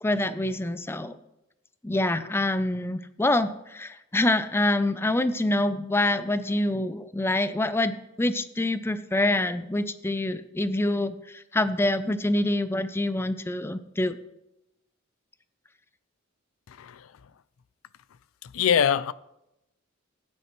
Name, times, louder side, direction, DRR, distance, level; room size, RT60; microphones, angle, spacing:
voice 1, 0.0-1.2 1.8-14.2, left 1 dB, 10° left, 0.5 m, -26 dB
voice 2, 16.7-17.2 18.4-19.1, left 8 dB, 90° left, 0.4 m, -24 dB
16.0 x 9.3 x 3.1 m
head